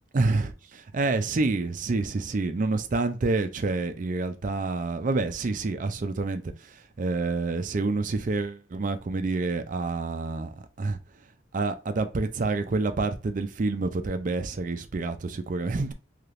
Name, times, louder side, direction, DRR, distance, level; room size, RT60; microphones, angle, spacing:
voice 1, 0.1-10.5 10.8-11.0 11.5-15.9, right 3 dB, 40° right, 0.4 m, -28 dB
3.3 x 2.8 x 2.5 m
head